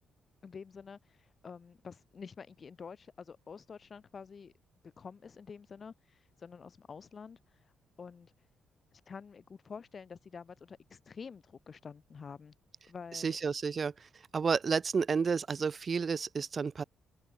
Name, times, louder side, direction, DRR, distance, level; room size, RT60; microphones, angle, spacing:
voice 1, 0.4-4.5 4.8-7.7 8.0-8.3 8.9-12.5 12.9-13.4, left 5 dB, 40° left, 7.2 m, -48 dB
voice 2, 13.1-13.9 14.3-16.8, right 5 dB, 40° right, 1.7 m, -31 dB
open air
cardioid pair, 90°, 0 cm